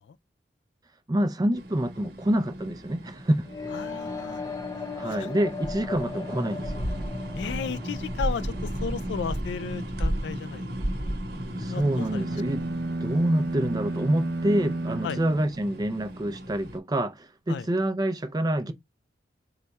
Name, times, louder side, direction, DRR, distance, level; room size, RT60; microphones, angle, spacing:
voice 1, 1.1-3.4 4.9-6.7 11.6-12.6 13.0-18.7, right 1 dB, 20° right, 0.4 m, -27 dB
sound 1, 1.5-16.8, equal, 65° right, 1.0 m, -35 dB
sound 2, 3.5-9.4, left 4 dB, 20° left, 0.7 m, -38 dB
voice 2, 3.7-4.4 4.8-5.3 7.3-11.0 11.7-12.2 15.0-15.2 17.5-17.7, left 6 dB, 75° left, 0.3 m, -35 dB
sound 3, 11.7-16.1, right 2 dB, 80° right, 0.6 m, -32 dB
4.7 x 2.2 x 4.0 m
head